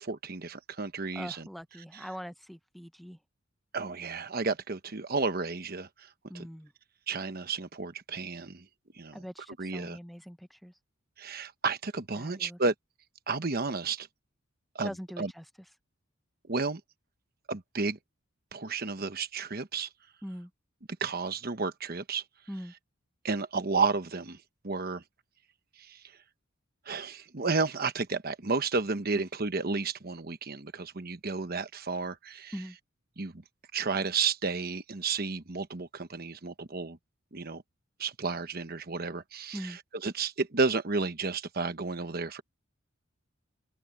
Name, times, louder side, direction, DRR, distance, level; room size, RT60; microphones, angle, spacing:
voice 1, 0.0-1.5 1.9-2.1 3.7-6.1 6.3-6.5 7.1-8.6 8.9-9.2 9.6-10.0 11.2-12.7 13.3-14.1 14.7-15.3 16.5-16.8 17.5-18.0 18.5-19.9 21.0-22.2 23.2-24.4 24.6-25.0 25.8-26.0 26.9-32.5 33.2-33.4 33.7-37.0 37.3-37.6 38.0-42.4, right 4 dB, 45° right, 1.1 m, -32 dB
voice 2, 1.1-3.2 6.3-6.7 9.1-10.7 12.1-12.6 14.8-15.4 20.2-20.5 22.5-22.7 29.1-29.2 32.5-32.8 39.5-39.8, equal, ahead, 0.7 m, -42 dB
open air
head